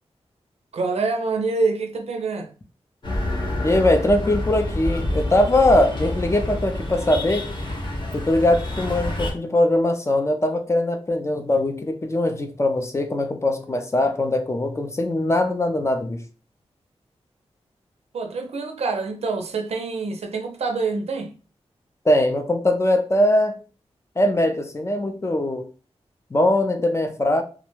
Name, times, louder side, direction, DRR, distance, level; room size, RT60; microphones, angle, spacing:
voice 1, 0.7-2.5 18.1-21.3, right 3 dB, 70° right, 0.5 m, -26 dB
sound 1, 3.0-9.3, left 1 dB, 45° left, 0.9 m, -27 dB
voice 2, 3.6-7.5 8.1-16.2 22.1-23.6 24.2-25.6 26.3-27.4, left 1 dB, 25° left, 0.4 m, -21 dB
2.4 x 2.1 x 3.0 m
wide cardioid pair, 85°, 11 cm